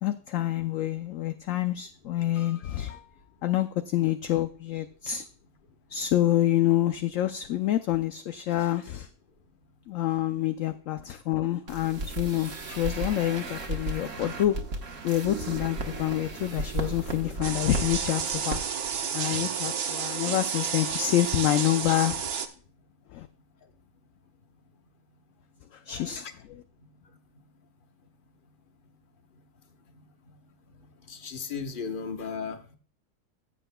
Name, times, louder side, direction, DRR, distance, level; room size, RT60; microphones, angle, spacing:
voice 1, 0.0-3.0 3.4-5.2 5.9-9.1 9.9-14.6 15.0-18.6 19.1-22.4 23.1-23.3 25.7-26.3, left 13 dB, 70° left, 9 dB, 0.8 m, -27 dB
sound 1, 11.7-18.0 18.3-18.6 18.8-19.0, right 2 dB, 55° right, 1.5 m, -35 dB
sound 2, 17.4-22.5, right 7 dB, 70° right, 1.3 m, -31 dB
voice 2, 29.9-30.4 30.8-32.8, left 5 dB, 35° left, 6 dB, 1.0 m, -37 dB
15.5 x 7.7 x 2.2 m, 0.40 s
omnidirectional pair, 1.7 m